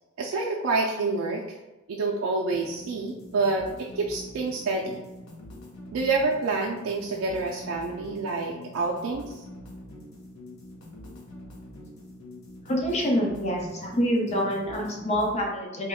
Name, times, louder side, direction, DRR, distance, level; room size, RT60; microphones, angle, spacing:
voice 1, 0.2-1.6 1.9-5.0 5.9-9.4, right 3 dB, 90° right, -2 dB, 0.4 m, -28 dB
sound 1, 2.5-15.4, left 1 dB, 90° left, 0.8 m, -44 dB
voice 2, 12.7-15.9, equal, 35° left, -1 dB, 0.6 m, -26 dB
3.0 x 2.1 x 3.5 m, 1.1 s
head